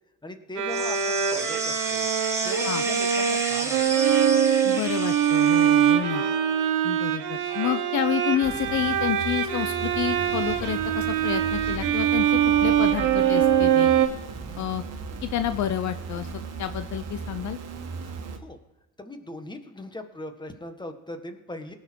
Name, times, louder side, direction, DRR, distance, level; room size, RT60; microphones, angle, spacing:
voice 1, 0.2-2.1 2.4-4.2 18.0-18.6 19.0-21.7, left 1 dB, 15° left, 6 dB, 1.6 m, -40 dB
Bowed string instrument, 0.6-14.1, right 9 dB, 85° right, 1.3 m, -23 dB
sound 1, 0.7-5.9, right 2 dB, 10° right, 2.0 m, -32 dB
voice 2, 4.6-6.3 6.8-13.9 14.6-14.8 15.2-16.3 16.6-17.6, left 11 dB, 70° left, 10 dB, 0.7 m, -29 dB
sound 2, 8.4-18.4, right 4 dB, 60° right, 1.6 m, -37 dB
19.0 x 6.6 x 4.6 m, 1.0 s
cardioid pair, 90°, 30 cm